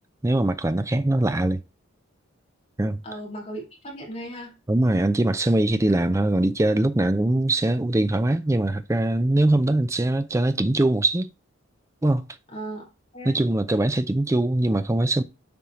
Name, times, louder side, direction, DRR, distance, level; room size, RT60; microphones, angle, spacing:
voice 1, 0.2-1.6 2.8-3.0 4.7-11.3 12.0-12.3 13.3-15.2, right 1 dB, 15° right, 0.4 m, -22 dB
voice 2, 3.0-4.5 12.5-12.8 13.1-13.3, right 1 dB, 30° left, 2.5 m, -36 dB
7.1 x 4.5 x 3.7 m
head